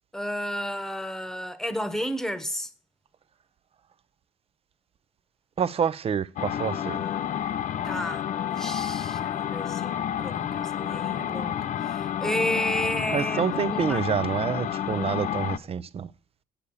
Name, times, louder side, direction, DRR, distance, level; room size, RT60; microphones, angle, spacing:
voice 1, 0.1-2.7 7.8-14.1, equal, 5° left, 1.2 m, -32 dB
voice 2, 5.6-7.0 13.1-16.1, right 7 dB, 35° right, 0.6 m, -27 dB
sound 1, 6.4-15.6, left 10 dB, 50° left, 0.6 m, -30 dB
8.3 x 8.3 x 7.0 m
cardioid pair, 110°, 17 cm